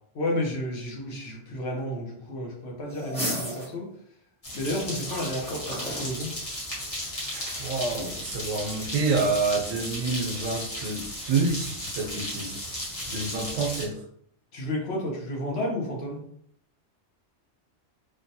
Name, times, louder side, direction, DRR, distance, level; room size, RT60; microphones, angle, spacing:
voice 1, 0.1-3.9 4.5-6.3 14.5-16.2, left 1 dB, 60° left, -1 dB, 0.9 m, -31 dB
sound 1, 2.9-3.7 5.0-6.1 7.4-8.2, equal, 5° left, 0.7 m, -34 dB
sound 2, 4.4-13.9, left 1 dB, 30° left, 0.9 m, -35 dB
voice 2, 7.3-12.6 13.1-14.0, right 3 dB, 80° right, 1 dB, 1.0 m, -28 dB
3.2 x 2.2 x 2.7 m, 0.68 s
omnidirectional pair, 1.3 m